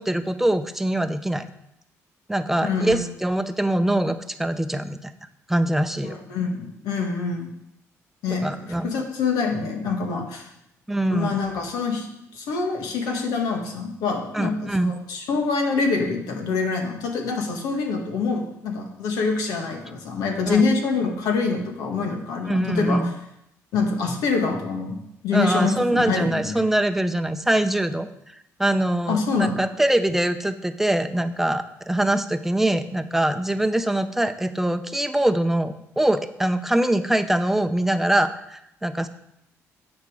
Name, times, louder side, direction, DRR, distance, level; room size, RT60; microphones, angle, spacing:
voice 1, 0.0-1.5 2.3-5.1 5.5-6.2 8.3-8.9 10.9-11.4 14.3-14.9 20.5-20.6 22.5-23.1 25.3-28.1 28.6-39.1, right 1 dB, 5° right, 9 dB, 0.7 m, -23 dB
voice 2, 2.6-3.0 6.0-7.5 8.2-10.5 11.1-12.1 12.3-23.0 23.7-25.0 25.2-26.6 29.1-29.6, left 4 dB, 85° left, 2 dB, 1.7 m, -25 dB
8.8 x 6.7 x 4.9 m, 0.80 s
cardioid pair, 90°, 6 cm